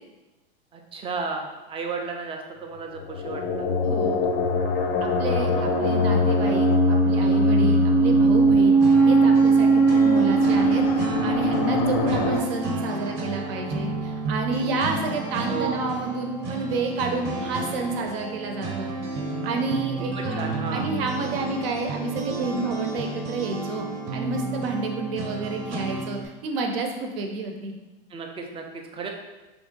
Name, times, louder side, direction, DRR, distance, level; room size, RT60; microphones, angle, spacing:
voice 1, 0.7-3.7 5.3-6.0 15.5-15.9 20.2-20.9 28.1-29.1, right 4 dB, 20° right, 2 dB, 0.4 m, -34 dB
sound 1, 3.0-12.4, right 1 dB, 65° left, 0.6 m, -20 dB
voice 2, 3.8-4.3 5.0-8.8 9.0-18.9 19.4-20.4 20.7-23.9 24.1-27.8, right 3 dB, 70° right, 3 dB, 0.8 m, -30 dB
sound 2, 8.8-26.3, right 3 dB, 35° right, 0.8 m, -32 dB
3.3 x 2.6 x 3.8 m, 1.2 s
hypercardioid pair, 115°, 31 cm